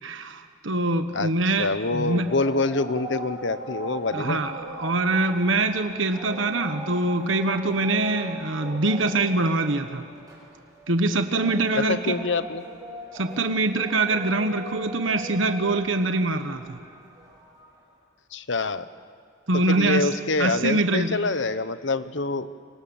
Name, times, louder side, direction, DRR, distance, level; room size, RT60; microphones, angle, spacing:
voice 1, 0.0-2.3 4.1-10.0 10.9-12.2 13.1-16.8 19.5-20.1 20.4-21.2, right 2 dB, 70° right, 8 dB, 1.3 m, -24 dB
sound 1, 1.4-17.8, right 2 dB, 20° right, 7.7 m, -40 dB
voice 2, 1.6-4.4 11.7-12.6 18.3-18.9 19.7-22.5, left 3 dB, 65° left, 13 dB, 1.0 m, -26 dB
29.5 x 25.5 x 7.2 m, 2.2 s
head